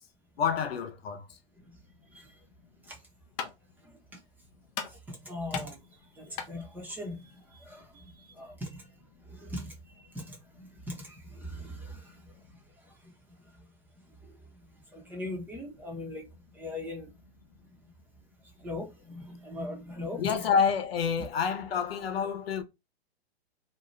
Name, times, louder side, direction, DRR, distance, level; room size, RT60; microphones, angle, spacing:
voice 1, 0.4-1.2 20.2-22.6, left 6 dB, 70° left, 0.9 m, -28 dB
sound 1, 2.8-8.1, left 7 dB, 25° left, 0.5 m, -42 dB
voice 2, 3.8-4.2 4.9-5.8 6.1-8.8 9.2-9.7 10.1-12.2 13.0-13.1 14.2-14.4 14.9-16.2 16.5-17.1 18.6-20.3 21.2-21.3, left 1 dB, 5° right, 0.8 m, -40 dB
2.7 x 2.3 x 3.1 m
hypercardioid pair, 140°, 31 cm